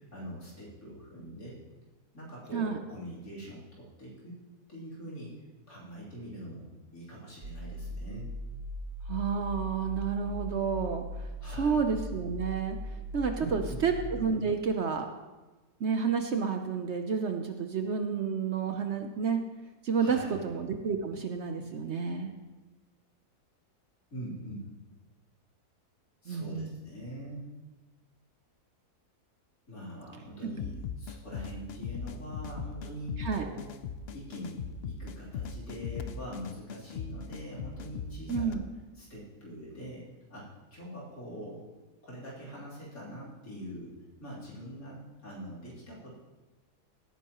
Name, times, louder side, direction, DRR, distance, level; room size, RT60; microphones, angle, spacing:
voice 1, 0.1-1.6 2.1-4.3 4.7-5.4 5.7-8.3 11.4-11.7 13.4-13.9 20.0-20.4 24.1-24.7 26.2-27.5 29.7-33.7 34.1-38.6 39.0-41.7 42.0-43.9 44.2-46.2, equal, 60° left, -6 dB, 3.7 m, -43 dB
sound 1, 7.4-14.2, equal, 85° right, 2.2 m, -39 dB
voice 2, 9.1-11.0 11.5-12.8 13.1-15.1 15.8-19.4 19.8-22.3 26.3-26.7 33.2-33.5 38.3-38.6, right 6 dB, 55° right, 5 dB, 0.8 m, -30 dB
sound 2, 30.6-38.5, left 6 dB, 80° left, 0.5 m, -39 dB
17.0 x 9.4 x 3.0 m, 1.2 s
omnidirectional pair, 1.7 m